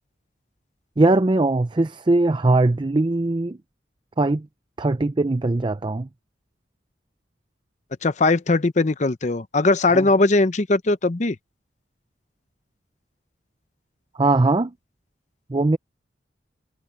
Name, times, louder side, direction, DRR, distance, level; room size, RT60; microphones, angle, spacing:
voice 1, 1.0-3.6 4.2-4.5 4.8-6.1 9.9-10.1 14.1-14.7 15.5-15.8, right 2 dB, 25° right, 0.5 m, -20 dB
voice 2, 8.0-11.4, left 2 dB, 40° left, 0.7 m, -20 dB
head